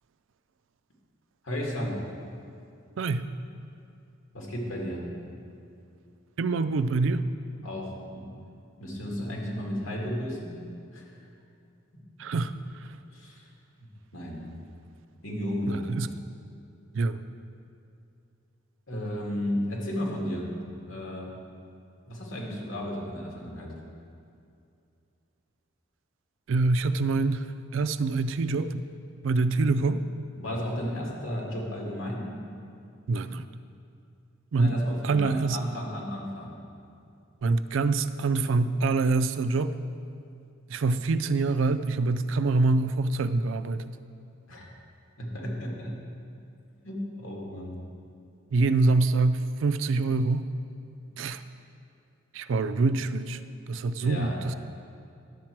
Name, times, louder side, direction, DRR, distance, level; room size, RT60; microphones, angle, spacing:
voice 1, 1.4-1.9 4.3-5.0 7.6-8.2 8.8-10.6 10.9-11.1 13.1-13.5 14.1-14.5 15.2-15.9 18.9-20.5 20.9-21.4 22.1-23.7 30.4-32.3 34.6-36.5 44.5-44.7 45.2-46.0 46.8-47.8 53.9-54.4, equal, 90° left, -2 dB, 2.1 m, -33 dB
voice 2, 3.0-3.3 6.4-7.3 12.2-12.5 15.7-16.1 16.9-17.2 26.5-28.8 29.2-30.0 33.1-33.4 34.5-34.8 35.0-35.6 37.4-39.7 40.7-44.0 48.5-50.5 51.2-51.4 52.3-53.4 53.7-54.5, right 3 dB, 70° right, 12 dB, 0.4 m, -25 dB
11.0 x 7.3 x 4.5 m, 2.5 s
head